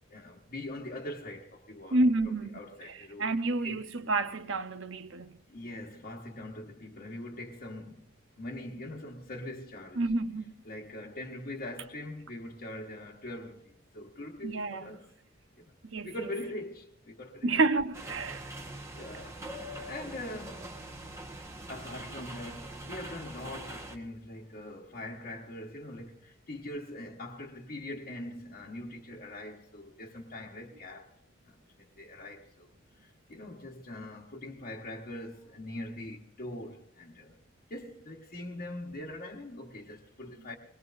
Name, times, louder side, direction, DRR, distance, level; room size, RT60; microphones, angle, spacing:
voice 1, 0.1-2.0 2.2-3.8 5.5-8.1 8.4-10.0 10.6-15.1 15.6-15.7 16.0-17.5 18.9-19.4 19.9-20.7 21.7-31.1 31.5-32.7 33.0-37.4 37.7-40.5, left 1 dB, 45° left, 1.2 m, -42 dB
voice 2, 1.9-2.6 2.9-5.3 10.0-10.5 14.4-14.9 15.8-16.1 17.4-18.5, right 2 dB, 65° right, 0.9 m, -29 dB
sound 1, 17.9-24.0, right 1 dB, 15° right, 1.2 m, -43 dB
22.0 x 20.5 x 2.6 m
head